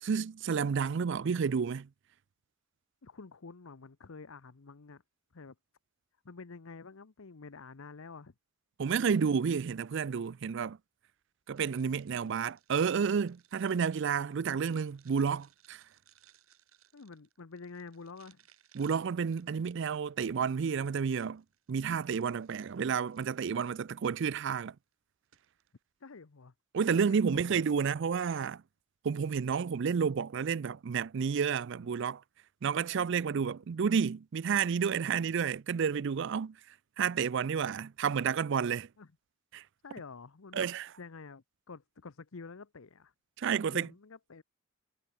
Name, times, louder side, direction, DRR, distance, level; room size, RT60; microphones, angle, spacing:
voice 1, 0.0-1.9 8.8-10.8 11.5-15.8 18.7-21.4 21.7-24.8 26.7-28.6 29.0-32.2 32.6-36.6 37.0-38.9 39.5-39.6 40.5-40.9 43.4-43.9, right 6 dB, 60° right, 0.4 m, -30 dB
voice 2, 3.0-5.0 5.3-5.5 6.2-8.3 16.9-18.4 26.0-26.5 27.1-27.6 39.0-39.1 39.8-40.7 41.0-43.1 43.5-44.4, left 4 dB, 75° left, 0.8 m, -48 dB
sound 1, 11.5-20.0 20.6-23.7 24.4-24.6 24.9-25.0 25.2-25.7, right 11 dB, 90° right, 7.6 m, -66 dB
head